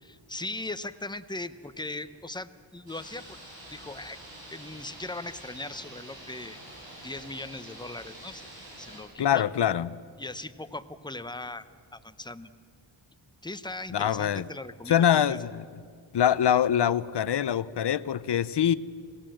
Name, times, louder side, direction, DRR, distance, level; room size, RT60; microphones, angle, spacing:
voice 1, 0.0-3.4 3.7-4.2 4.5-6.6 7.0-8.5 8.8-9.5 10.2-11.7 11.9-12.5 13.4-15.4, left 2 dB, 10° left, 11 dB, 0.7 m, -39 dB
sound 1, 2.9-9.0, right 1 dB, 65° right, 7.9 m, -46 dB
voice 2, 9.2-9.9 13.9-14.5 14.9-15.6 16.1-18.7, left 9 dB, 60° left, 17 dB, 0.7 m, -24 dB
27.5 x 17.5 x 7.7 m, 2.2 s
wide cardioid pair, 145°, 48 cm